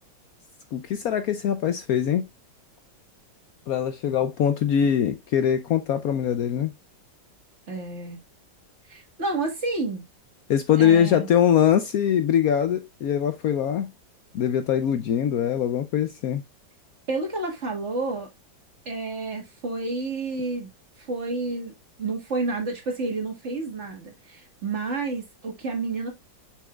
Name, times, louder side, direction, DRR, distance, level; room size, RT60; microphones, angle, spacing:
voice 1, 0.7-2.2 3.7-6.7 10.5-13.9 14.3-16.4, left 9 dB, 70° left, 0.9 m, -22 dB
voice 2, 7.7-8.2 8.9-10.0 10.8-11.3 17.1-18.3 18.9-20.7 21.0-21.7 22.0-26.1, right 3 dB, 40° right, 1.8 m, -30 dB
6.7 x 6.2 x 2.2 m
omnidirectional pair, 1.9 m